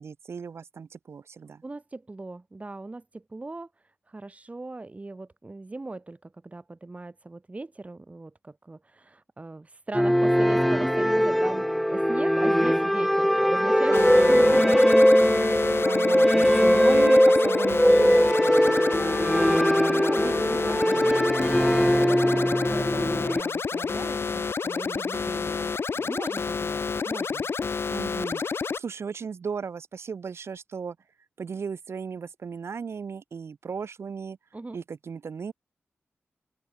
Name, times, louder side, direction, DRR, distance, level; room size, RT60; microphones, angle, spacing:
voice 1, 0.0-1.6 13.9-14.7 15.8-18.9 27.9-31.0 31.4-34.4 34.7-35.5, right 6 dB, 75° right, 6.1 m, -36 dB
voice 2, 1.6-3.7 4.1-15.3 19.4-21.4 21.7-27.5 34.5-34.8, right 2 dB, 30° right, 4.5 m, -39 dB
sound 1, 9.9-23.4, equal, ahead, 1.3 m, -21 dB
sound 2, 13.9-28.8, left 5 dB, 65° left, 2.1 m, -29 dB
open air
cardioid pair, 70°, 4 cm